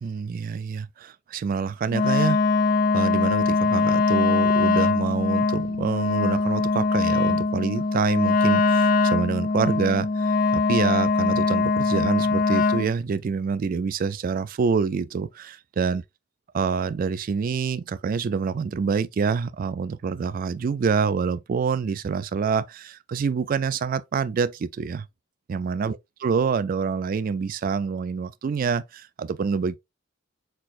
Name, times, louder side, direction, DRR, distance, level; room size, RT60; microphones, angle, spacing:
voice 1, 0.0-2.4 2.9-16.0 16.5-25.1 25.5-29.8, right 5 dB, 45° right, 0.3 m, -26 dB
Wind instrument woodwind instrument, 1.9-12.9, left 4 dB, 45° left, 0.5 m, -22 dB
4.5 x 4.2 x 2.4 m
head